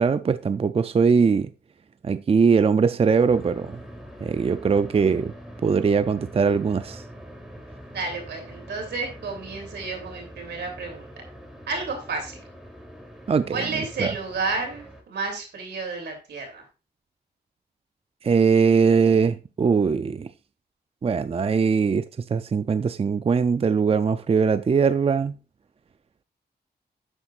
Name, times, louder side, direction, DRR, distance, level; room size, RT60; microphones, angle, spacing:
voice 1, 0.0-1.5 2.0-3.8 4.2-5.3 5.6-7.0 13.3-14.1 18.2-20.3 21.0-22.0 22.3-25.4, right 5 dB, 35° right, 0.4 m, -21 dB
sound 1, 3.3-15.0, equal, ahead, 3.1 m, -43 dB
voice 2, 7.9-11.1 11.7-12.4 13.5-16.6, right 3 dB, 85° right, 3.1 m, -31 dB
9.9 x 7.9 x 2.5 m
cardioid pair, 60°, 17 cm